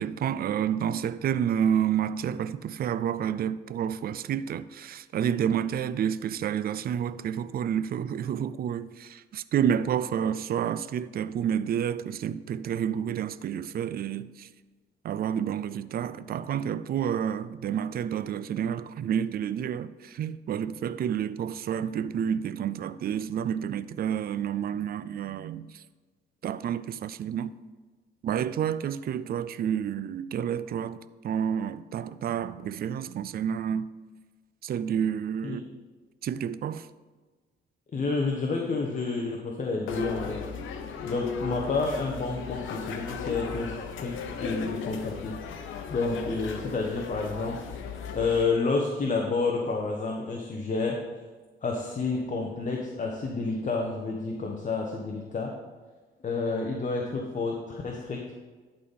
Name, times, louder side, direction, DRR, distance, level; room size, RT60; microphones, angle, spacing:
voice 1, 0.0-14.5 15.0-25.8 26.4-27.5 28.2-33.9 34.6-35.6 36.2-36.9, right 9 dB, 50° right, 0.4 m, -29 dB
voice 2, 37.9-40.4 41.0-43.7 44.0-45.3 45.9-47.6 48.1-51.0 51.6-55.6 56.2-58.2, left 3 dB, 40° left, 1.1 m, -29 dB
sound 1, 39.9-48.4, left 6 dB, 80° left, 0.9 m, -36 dB
11.5 x 4.1 x 5.4 m
cardioid pair, 90°, 20 cm